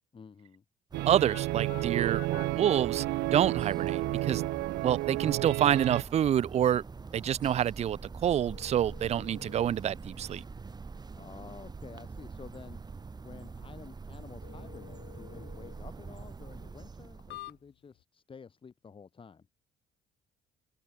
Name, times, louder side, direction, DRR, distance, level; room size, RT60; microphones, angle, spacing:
voice 1, 0.1-0.6 11.1-12.8 13.2-19.5, left 5 dB, 30° left, 3.5 m, -50 dB
sound 1, 0.9-17.6, right 4 dB, 25° right, 4.2 m, -44 dB
sound 2, 0.9-6.0, right 19 dB, 85° right, 0.9 m, -31 dB
voice 2, 1.0-4.4 4.8-6.8 7.1-10.4, right 10 dB, 40° right, 0.5 m, -27 dB
sound 3, 1.3-18.0, left 19 dB, 85° left, 2.0 m, -54 dB
open air
cardioid pair, 110°, 17 cm